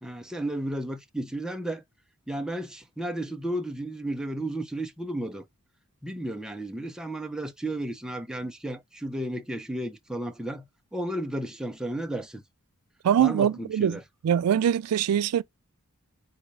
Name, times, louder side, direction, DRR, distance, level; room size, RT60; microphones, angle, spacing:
voice 1, 0.0-1.8 2.3-5.4 6.0-12.4 13.2-14.0, right 1 dB, 5° right, 0.6 m, -33 dB
voice 2, 13.0-14.0 14.2-15.4, right 9 dB, 85° right, 0.3 m, -23 dB
3.9 x 3.6 x 3.2 m
head